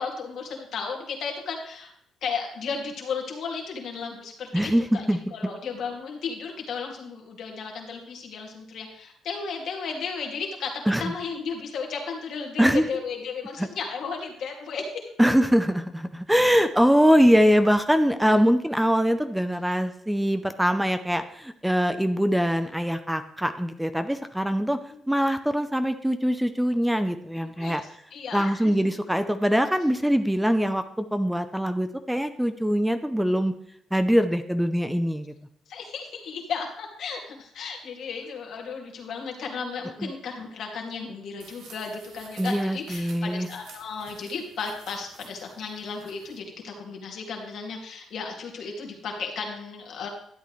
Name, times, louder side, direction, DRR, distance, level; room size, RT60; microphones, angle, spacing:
voice 1, 0.0-1.9 2.2-5.0 5.3-15.1 24.9-25.0 27.4-27.8 28.1-28.7 35.7-50.1, left 5 dB, 70° left, 1 dB, 2.4 m, -34 dB
voice 2, 4.5-5.2 10.9-11.1 12.6-12.8 13.6-13.7 15.2-24.8 25.1-27.8 28.3-33.5 33.9-35.3 40.0-40.1 42.4-43.5, equal, 5° right, 10 dB, 0.6 m, -23 dB
sound 1, 41.4-46.4, right 5 dB, 80° right, 1.7 m, -50 dB
12.5 x 8.3 x 3.2 m, 0.70 s
cardioid pair, 90°, 0 cm